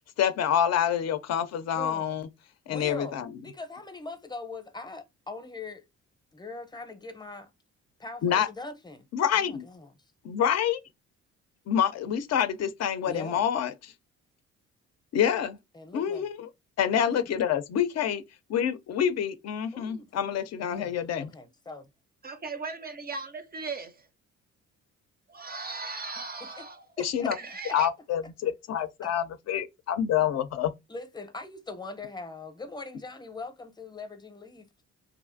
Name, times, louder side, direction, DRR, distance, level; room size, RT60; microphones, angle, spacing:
voice 1, 0.2-2.3 2.7-3.3 8.2-8.5 9.1-9.6 10.2-10.8 11.7-13.9 15.1-15.6 15.9-16.5 16.8-18.2 18.5-21.3 27.0-27.4 27.7-30.7, left 9 dB, 60° left, 0.4 m, -27 dB
voice 2, 1.7-2.2 2.7-5.8 6.3-7.5 8.0-9.1 9.4-9.9 13.1-13.4 15.7-16.3 17.0-17.4 19.7-20.1 20.6-21.9 26.1-26.7 27.0-27.6 29.0-29.1 30.9-34.8, left 3 dB, 15° left, 0.6 m, -42 dB
voice 3, 22.2-24.1 25.3-26.9 27.3-27.9, right 4 dB, 30° right, 0.4 m, -37 dB
2.6 x 2.4 x 2.5 m
cardioid pair, 90°, 30 cm